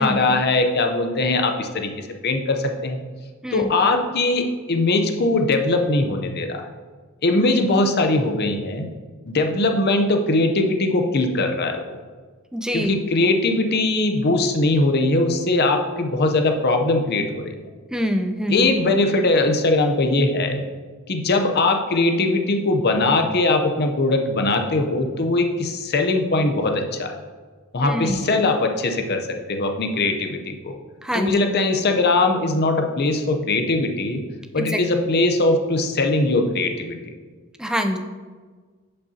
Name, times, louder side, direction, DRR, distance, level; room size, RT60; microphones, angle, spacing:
voice 1, 0.0-3.0 3.5-6.7 7.2-8.9 9.2-11.9 12.7-17.6 18.5-20.6 21.1-27.2 27.7-30.8 31.1-34.2 34.5-37.0, left 2 dB, 45° left, 5 dB, 0.7 m, -21 dB
voice 2, 12.5-12.9 17.9-18.7 27.8-28.2 31.0-31.3 34.6-34.8 37.6-38.0, equal, 5° right, 5 dB, 0.4 m, -24 dB
10.5 x 5.5 x 2.8 m, 1.4 s
head